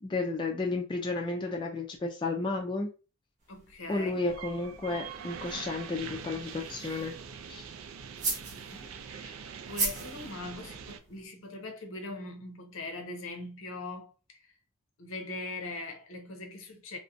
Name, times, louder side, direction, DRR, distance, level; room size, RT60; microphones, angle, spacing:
voice 1, 0.0-2.9 3.9-7.1 7.5-7.6, left 3 dB, 25° left, 0.3 m, -32 dB
sound 1, 3.4-11.2, right 3 dB, 35° right, 0.8 m, -40 dB
voice 2, 3.5-4.2 8.4-9.4 9.7-14.5 15.0-17.0, left 2 dB, 75° left, 0.6 m, -41 dB
sound 2, 4.3-11.0, right 6 dB, 75° right, 0.3 m, -44 dB
2.5 x 2.1 x 2.5 m
head